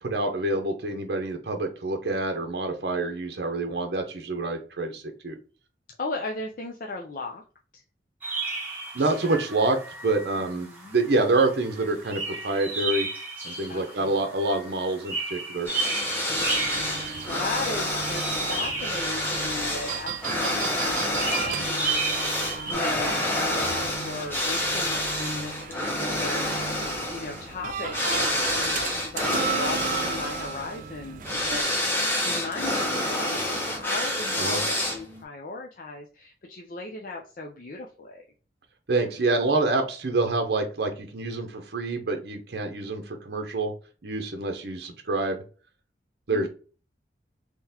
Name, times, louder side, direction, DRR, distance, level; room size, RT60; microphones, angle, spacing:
voice 1, 0.0-5.4 8.9-9.8 10.0-13.1 13.4-15.7 34.4-34.6 38.9-43.7 44.0-45.4 46.3-46.5, right 2 dB, 65° right, 4 dB, 0.7 m, -27 dB
voice 2, 6.0-7.4 7.7-7.8 10.4-11.0 13.7-14.2 16.3-38.2 46.3-46.5, left 3 dB, 50° left, 1 dB, 0.5 m, -37 dB
Birds Chirps, 8.2-22.7, right 3 dB, 10° right, 1.1 m, -34 dB
sound 1, 15.7-35.2, left 1 dB, 10° left, 0.8 m, -28 dB
sound 2, 16.3-31.6, right 6 dB, 50° right, 0.3 m, -36 dB
3.8 x 2.9 x 2.8 m, 0.37 s
head